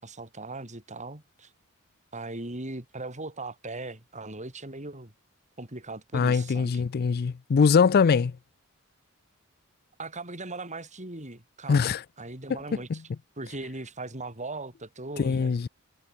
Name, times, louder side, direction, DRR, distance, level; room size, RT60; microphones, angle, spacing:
voice 1, 0.0-1.5 2.1-5.1 5.6-6.8 10.0-11.9 12.2-13.0 13.4-15.5, right 2 dB, 35° right, 5.0 m, -39 dB
voice 2, 6.1-8.3 11.7-12.0 12.9-13.0 15.2-15.7, left 5 dB, 45° left, 0.4 m, -22 dB
head